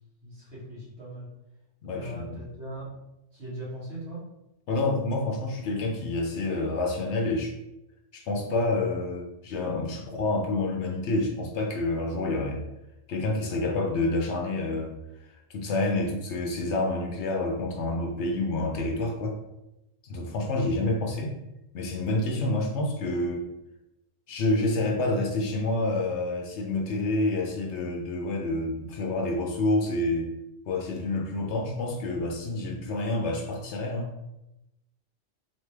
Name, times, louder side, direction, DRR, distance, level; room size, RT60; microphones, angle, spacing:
voice 1, 0.2-1.3 1.9-2.9 3.3-4.3, right 1 dB, 50° right, -8 dB, 1.9 m, -39 dB
voice 2, 1.8-2.4 4.7-7.5 8.1-12.6 13.1-14.9 15.5-19.4 20.0-21.3 21.7-23.5 24.3-30.3 30.7-34.1, left 2 dB, 70° left, 1 dB, 1.0 m, -28 dB
3.9 x 3.2 x 3.3 m, 0.91 s
omnidirectional pair, 1.3 m